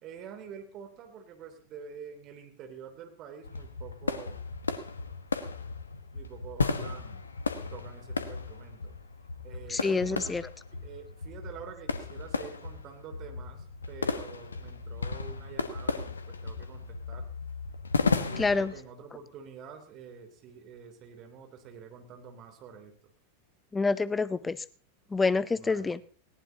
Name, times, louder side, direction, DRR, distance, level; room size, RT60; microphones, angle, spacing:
voice 1, 0.0-4.4 6.1-7.2 7.7-9.0 9.4-10.3 10.8-17.3 18.0-22.9 25.5-25.9, right 7 dB, 35° right, 5 dB, 3.1 m, -47 dB
sound 1, 3.4-18.8, left 4 dB, 75° left, 1.2 m, -34 dB
voice 2, 9.7-10.5 18.4-18.7 23.7-24.6 25.1-26.0, left 4 dB, 10° left, 19 dB, 0.6 m, -27 dB
19.5 x 18.0 x 2.9 m, 0.42 s
figure-of-eight pair, 90°, 0 cm